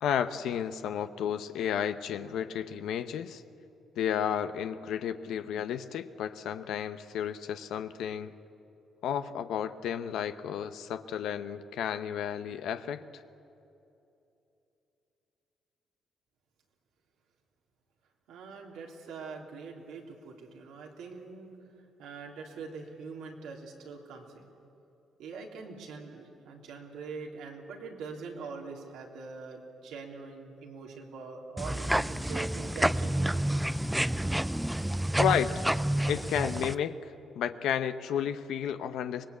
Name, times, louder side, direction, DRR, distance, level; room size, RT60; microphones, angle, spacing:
voice 1, 0.0-3.4 4.0-8.3 9.0-13.2 35.2-35.5 36.1-39.2, left 9 dB, 80° left, 9 dB, 0.8 m, -32 dB
voice 2, 18.3-21.5 22.0-24.5 25.2-33.6, right 4 dB, 90° right, 0 dB, 3.5 m, -43 dB
sound 1, 31.6-36.7, right 1 dB, 5° right, 0.6 m, -29 dB
25.0 x 19.5 x 8.5 m, 2.8 s
cardioid pair, 90°, 0 cm